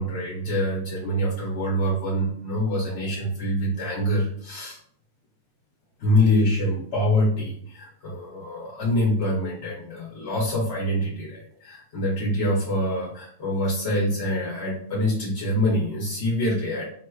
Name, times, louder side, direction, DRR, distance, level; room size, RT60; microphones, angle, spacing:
voice 1, 0.0-4.8 6.0-16.8, left 1 dB, 75° left, -4 dB, 1.0 m, -25 dB
3.6 x 2.8 x 2.3 m, 0.63 s
omnidirectional pair, 1.2 m